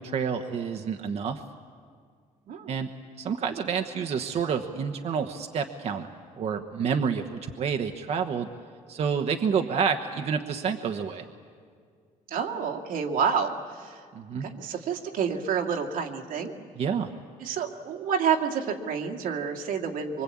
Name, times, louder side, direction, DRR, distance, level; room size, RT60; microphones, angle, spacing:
voice 1, 0.0-1.4 2.7-2.9 3.2-8.5 8.9-11.2 14.1-14.5 16.8-17.1, right 6 dB, 50° right, 5 dB, 1.1 m, -29 dB
voice 2, 12.3-14.0 14.4-16.5 17.4-20.2, right 7 dB, 85° right, 1 dB, 2.3 m, -29 dB
24.5 x 24.0 x 8.6 m, 2.1 s
cardioid pair, 140°, 14 cm